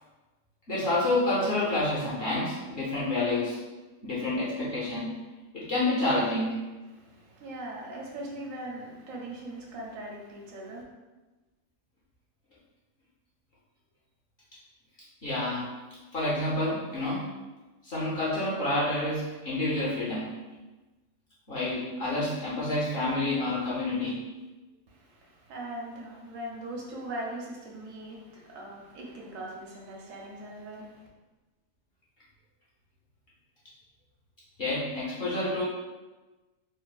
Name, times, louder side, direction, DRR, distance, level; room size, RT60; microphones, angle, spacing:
voice 1, 0.7-3.6 4.0-5.1 5.5-6.6 15.2-15.7 16.1-17.2 17.8-20.3 21.5-24.2 34.6-35.6, left 2 dB, 55° left, -7 dB, 0.7 m, -28 dB
voice 2, 6.9-10.8 24.9-31.1, right 1 dB, 75° right, -2 dB, 1.0 m, -40 dB
3.2 x 2.1 x 2.3 m, 1.2 s
omnidirectional pair, 1.5 m